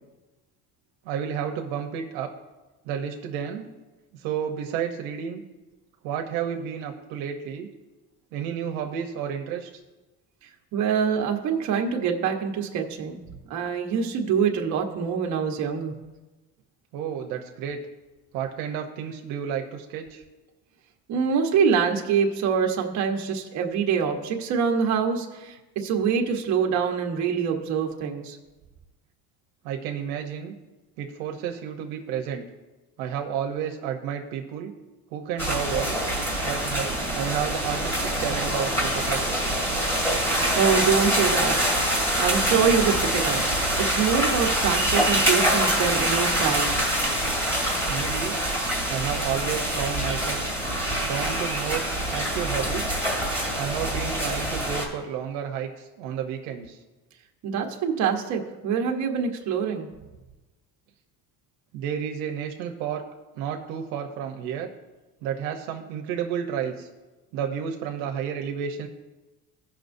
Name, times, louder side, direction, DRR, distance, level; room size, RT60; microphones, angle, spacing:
voice 1, 1.0-2.3 2.8-3.6 4.1-5.4 6.0-7.7 8.3-9.7 16.9-17.8 18.3-20.2 29.6-30.5 31.0-32.4 33.0-34.7 35.1-36.0 36.4-39.4 47.9-48.4 48.9-50.4 51.0-51.8 52.1-53.0 53.6-56.8 61.7-63.0 63.4-64.7 65.2-66.9 67.3-68.9, right 8 dB, 80° right, 3 dB, 0.9 m, -31 dB
voice 2, 10.7-13.2 13.5-15.9 21.1-28.4 40.2-43.4 43.8-46.8 57.4-59.9, right 6 dB, 50° right, 2 dB, 1.2 m, -25 dB
sound 1, 35.4-54.8, right 1 dB, 5° left, 2.1 m, -25 dB
17.0 x 5.9 x 2.6 m, 1.1 s
cardioid pair, 160°, 35 cm